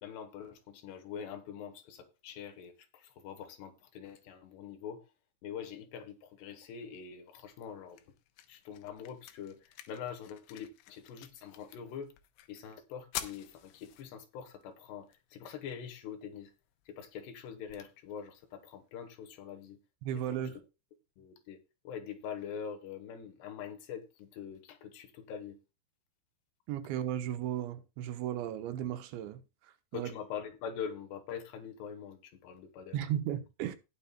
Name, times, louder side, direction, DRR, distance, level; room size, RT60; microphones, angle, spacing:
voice 1, 0.0-5.1 5.4-8.0 8.5-12.1 12.5-16.5 16.9-19.8 20.3-20.5 21.2-21.6 21.8-25.6 29.9-33.1, left 7 dB, 75° left, 3.2 m, -44 dB
sound 1, 7.4-19.4, left 12 dB, 90° left, 3.3 m, -50 dB
voice 2, 20.0-20.6 26.7-29.4 29.9-30.1 32.9-33.8, right 11 dB, 80° right, 3.2 m, -35 dB
19.0 x 7.0 x 2.3 m
omnidirectional pair, 5.2 m